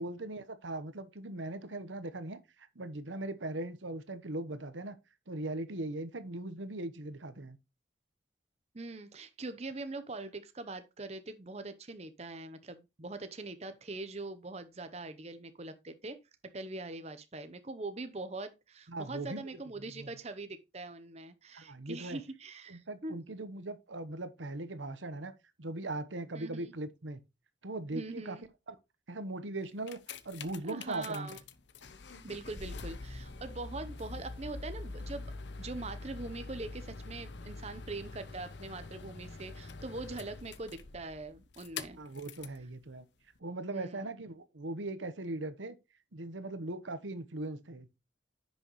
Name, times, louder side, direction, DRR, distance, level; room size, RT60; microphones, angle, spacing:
voice 1, 0.0-5.0 5.3-7.6 18.9-19.5 20.0-20.1 21.5-22.2 22.7-25.3 25.6-27.2 27.6-28.4 28.7-28.8 29.1-31.3 42.0-43.0 43.4-45.8 46.1-47.9, right 2 dB, 90° right, 1.1 m, -39 dB
voice 2, 8.7-16.2 16.5-23.2 26.3-26.7 27.9-28.4 30.7-31.4 32.2-35.3 35.6-42.0 43.7-44.1, right 2 dB, 35° right, 0.8 m, -42 dB
sound 1, 29.6-42.6 43.4-43.5, left 3 dB, 70° left, 0.8 m, -45 dB
10.5 x 6.2 x 3.1 m
head